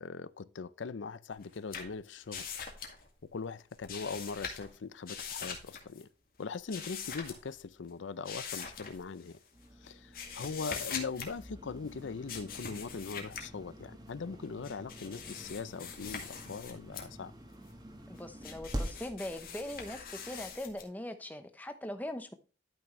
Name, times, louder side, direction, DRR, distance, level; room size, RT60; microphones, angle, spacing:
voice 1, 0.0-2.4 3.3-6.1 6.4-9.4 9.8-17.3, left 4 dB, 90° left, 0.5 m, -41 dB
sound 1, 1.3-3.3 3.6-4.7 5.0-6.0 6.7-7.6 8.2-9.4 9.8-11.3 12.3-13.5 14.4-17.1 17.6-20.8, left 6 dB, 50° left, 2.0 m, -43 dB
sound 2, 9.5-20.6, equal, 20° right, 1.3 m, -47 dB
voice 2, 18.1-22.3, left 1 dB, 10° left, 0.8 m, -41 dB
12.0 x 6.0 x 3.1 m
head